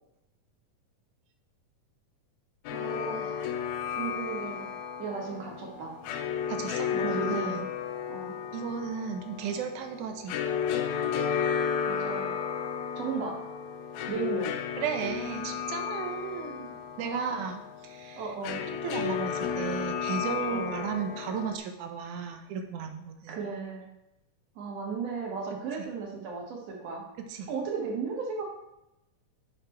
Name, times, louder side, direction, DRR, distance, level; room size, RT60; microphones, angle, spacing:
sound 1, 2.7-21.6, left 7 dB, 75° left, 1.8 m, -33 dB
voice 1, 2.7-3.5 3.9-4.7 5.0-6.0 6.9-7.6 8.1-8.3 11.8-12.3 13.0-13.4 14.1-14.5 17.0-17.5 18.2-18.6 20.5-20.8 23.3-23.9 24.6-27.0 27.5-28.4, right 5 dB, 60° right, -1 dB, 2.5 m, -35 dB
voice 2, 6.5-7.7 8.5-10.3 14.8-18.3 18.7-23.4 27.3-27.5, right 6 dB, 75° right, 6 dB, 2.2 m, -35 dB
6.7 x 5.9 x 4.6 m, 0.88 s
omnidirectional pair, 3.6 m